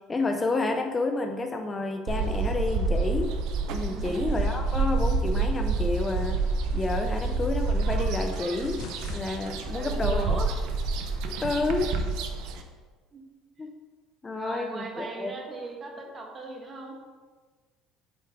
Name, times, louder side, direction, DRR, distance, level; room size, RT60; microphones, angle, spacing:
voice 1, 0.1-3.3 3.7-6.4 6.7-8.8 9.1-10.4 11.4-11.9 13.6-13.7 14.2-15.3, left 3 dB, 20° left, 5 dB, 0.5 m, -29 dB
sound 1, 2.1-12.6, right 3 dB, 70° right, 0.7 m, -28 dB
voice 2, 3.8-4.3 7.0-7.2 9.6-10.5 11.2-11.6 13.1-13.2 14.3-17.0, right 3 dB, 30° right, 1 dB, 1.3 m, -39 dB
sound 2, 7.2-12.8, left 5 dB, 70° left, 1.0 m, -47 dB
7.6 x 4.7 x 3.6 m, 1.4 s
supercardioid pair, 110°, 0 cm